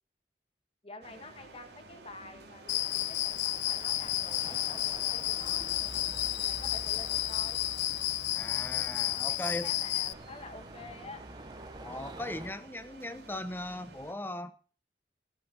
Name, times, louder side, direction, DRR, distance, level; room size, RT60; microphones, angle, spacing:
voice 1, 0.8-5.8 6.4-7.6 9.1-11.2, left 2 dB, 35° left, 7 dB, 1.9 m, -48 dB
sound 1, 1.0-14.1, right 2 dB, 75° right, 2.7 m, -53 dB
Cricket, 2.7-10.1, left 15 dB, 85° left, 0.5 m, -32 dB
sound 2, 2.7-12.5, right 2 dB, 25° right, 0.9 m, -47 dB
voice 2, 8.3-9.7 11.8-14.5, left 1 dB, 10° left, 12 dB, 1.0 m, -38 dB
16.5 x 7.7 x 5.5 m, 0.39 s
head